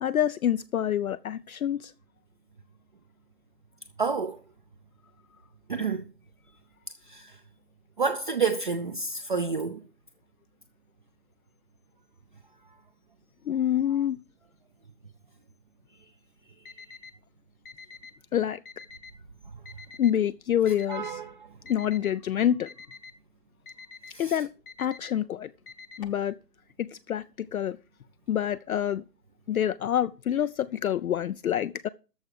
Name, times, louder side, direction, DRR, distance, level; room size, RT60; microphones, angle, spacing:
voice 1, 0.0-1.9 13.4-14.2 18.3-18.6 20.0-21.2 21.7-22.7 24.2-24.5 24.8-25.5 26.0-26.4 26.8-27.8 28.3-29.0 29.5-31.9, left 10 dB, 60° left, 0.5 m, -27 dB
voice 2, 4.0-4.4 5.7-6.0 7.0-7.4 8.0-9.8 20.9-21.5 24.1-24.4, right 5 dB, 30° right, 0.6 m, -29 dB
Alarm, 16.6-17.1 17.6-18.1 18.6-19.1 19.7-20.1 20.7-21.1 21.7-22.1 22.7-23.1 23.7-24.1 24.7-25.1 25.7-26.2, left 4 dB, 35° left, 0.9 m, -46 dB
13.5 x 4.7 x 7.9 m
hypercardioid pair, 160°, 50 cm